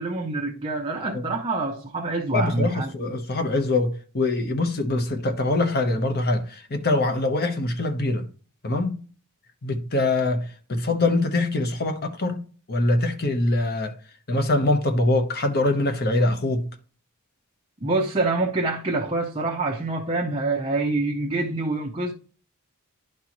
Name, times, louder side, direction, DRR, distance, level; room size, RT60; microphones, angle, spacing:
voice 1, 0.0-2.9 17.8-22.1, right 2 dB, 25° right, 0.7 m, -26 dB
voice 2, 2.3-8.3 8.6-9.0 9.6-13.9 14.3-16.7, left 2 dB, 45° left, 1.1 m, -24 dB
11.0 x 4.2 x 3.0 m
head